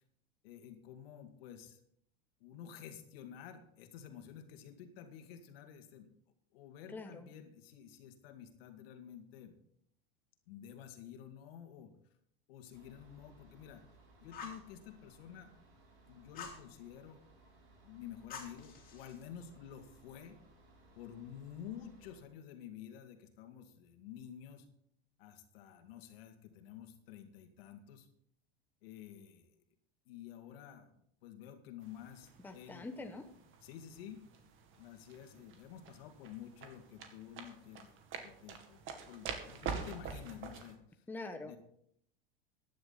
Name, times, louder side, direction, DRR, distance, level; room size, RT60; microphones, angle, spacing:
voice 1, 0.4-1.8 2.4-6.1 6.5-9.5 10.5-11.9 12.5-13.8 14.2-15.5 16.1-17.2 17.8-20.4 20.9-24.7 25.2-28.1 28.8-29.5 30.1-30.9 31.2-32.8 33.6-34.2 34.8-37.9 38.2-38.8 39.1-41.0 41.4-41.6, left 9 dB, 70° left, 6 dB, 2.4 m, -51 dB
voice 2, 6.9-7.3 32.4-33.2 41.1-41.6, left 3 dB, 5° left, 5 dB, 1.1 m, -44 dB
sound 1, 12.7-22.2, right 2 dB, 65° right, 6.4 m, -63 dB
Fire, 14.3-14.7 16.3-16.6 18.3-19.2, left 5 dB, 30° left, 3.2 m, -47 dB
sound 2, 31.8-40.8, right 6 dB, 40° right, 2.1 m, -47 dB
14.5 x 10.5 x 4.2 m, 0.69 s
supercardioid pair, 125°, 30 cm